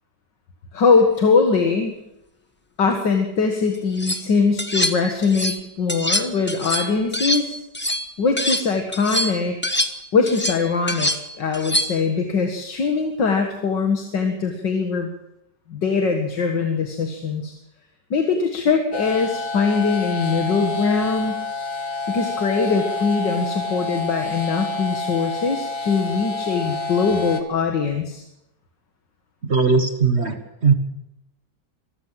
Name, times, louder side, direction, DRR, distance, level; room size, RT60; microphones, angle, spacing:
voice 1, 0.7-2.0 2.8-7.6 8.2-9.6 10.1-15.1 15.7-17.5 18.1-21.4 22.1-28.2, left 4 dB, 85° left, 4 dB, 2.5 m, -21 dB
sound 1, 3.7-4.2 4.6-5.6 5.9-8.7 8.9-12.1, left 1 dB, 10° left, 1.0 m, -25 dB
sound 2, 18.9-27.4, left 3 dB, 50° left, 2.0 m, -28 dB
voice 2, 29.5-30.4 30.6-30.7, right 5 dB, 40° right, 8 dB, 1.7 m, -18 dB
24.0 x 14.0 x 7.7 m, 0.85 s
omnidirectional pair, 1.9 m